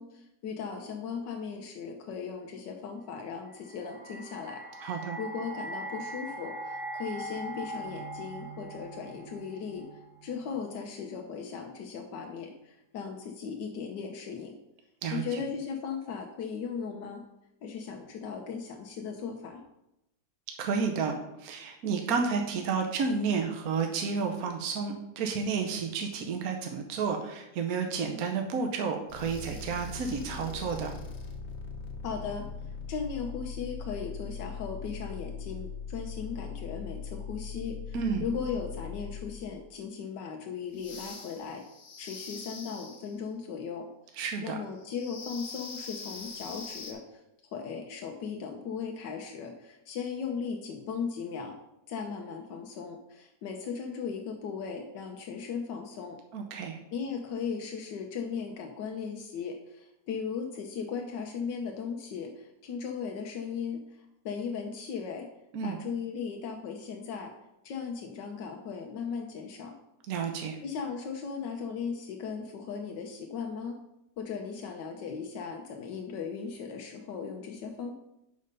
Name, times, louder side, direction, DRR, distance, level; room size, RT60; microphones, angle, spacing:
voice 1, 0.0-4.9 5.2-14.5 15.1-17.2 17.6-19.6 32.0-32.4 32.9-41.6 42.0-43.9 44.4-51.6 51.9-56.2 56.6-65.3 65.6-67.3 67.6-69.7 70.6-73.8 74.2-77.9, left 6 dB, 90° left, 2 dB, 1.4 m, -37 dB
sound 1, 3.5-10.6, right 1 dB, 85° right, 2.0 m, -41 dB
voice 2, 4.8-5.2 15.0-15.4 20.6-30.9 37.9-38.2 44.2-44.6 56.3-56.8 65.5-65.8 70.1-70.6, right 5 dB, 65° right, 3 dB, 1.2 m, -31 dB
sound 2, 29.1-39.5 40.7-43.2 44.8-46.9, left 5 dB, 50° left, 1.3 m, -41 dB
5.4 x 5.2 x 6.6 m, 0.86 s
omnidirectional pair, 1.8 m